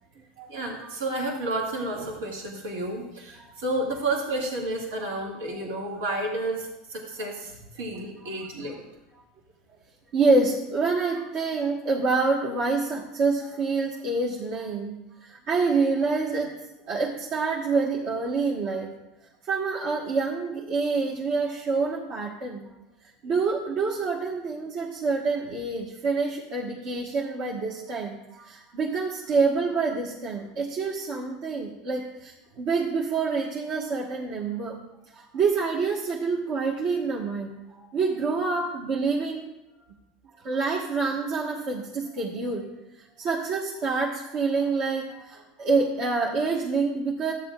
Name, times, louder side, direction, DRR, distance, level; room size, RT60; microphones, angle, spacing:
voice 1, 0.5-8.7, right 2 dB, 85° right, -2 dB, 2.1 m, -31 dB
voice 2, 10.1-16.5 16.9-18.9 19.5-22.7 23.2-34.8 35.1-37.5 37.8-39.4 40.4-42.6 43.2-47.3, right 4 dB, 55° right, -4 dB, 1.5 m, -27 dB
13.5 x 9.4 x 2.5 m, 0.93 s
supercardioid pair, 125°, 0 cm